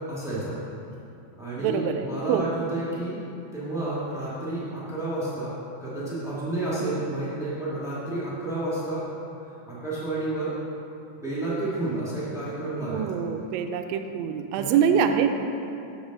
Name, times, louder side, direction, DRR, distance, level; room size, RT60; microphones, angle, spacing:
voice 1, 0.1-0.6 1.4-3.2 3.5-5.5 5.8-9.0 9.7-10.5 11.2-13.0 14.5-14.7, right 2 dB, 5° right, -9 dB, 0.3 m, -30 dB
voice 2, 1.6-2.5 6.8-6.9 12.8-15.4, right 7 dB, 80° right, 6 dB, 1.6 m, -25 dB
7.0 x 5.2 x 6.3 m, 2.7 s
omnidirectional pair, 3.6 m